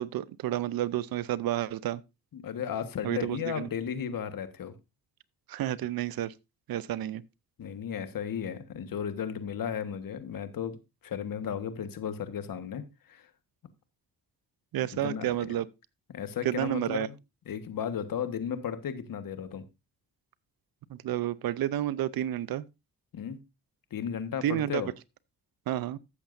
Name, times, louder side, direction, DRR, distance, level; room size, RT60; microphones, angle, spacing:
voice 1, 0.0-2.0 3.0-3.7 5.5-6.3 6.7-7.2 14.7-15.7 16.4-17.1 20.9-22.6 24.4-24.8 25.7-26.0, right 12 dB, 65° right, 0.7 m, -30 dB
voice 2, 2.3-4.7 7.6-10.8 11.0-12.8 13.1-13.2 15.0-15.6 16.1-17.1 17.5-19.6 23.1-23.4 23.9-24.9, left 8 dB, 60° left, 1.4 m, -34 dB
14.5 x 7.1 x 2.6 m
supercardioid pair, 60°, 38 cm